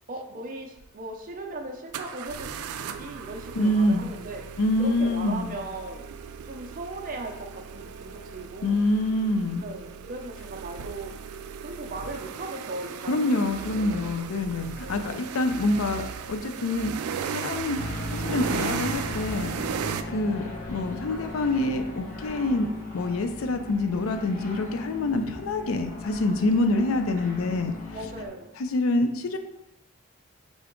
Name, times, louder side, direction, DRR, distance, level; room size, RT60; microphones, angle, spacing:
voice 1, 0.1-2.5 2.7-4.4 4.8-6.0 6.4-8.9 9.6-11.1 11.6-13.5 13.8-14.0 14.8-15.0 27.2-27.3 27.9-28.6, right 2 dB, 40° right, 2 dB, 0.6 m, -38 dB
sound 1, 0.8-0.9 1.9-20.0, right 7 dB, 85° right, 0.3 m, -36 dB
voice 2, 3.6-4.0 4.6-5.5 8.6-9.7 13.1-16.9 17.3-22.7 22.9-27.7 28.6-29.4, left 2 dB, 70° left, 7 dB, 0.5 m, -26 dB
sound 2, 17.7-28.3, left 2 dB, 35° left, 1.1 m, -37 dB
3.8 x 3.5 x 3.6 m, 0.87 s
head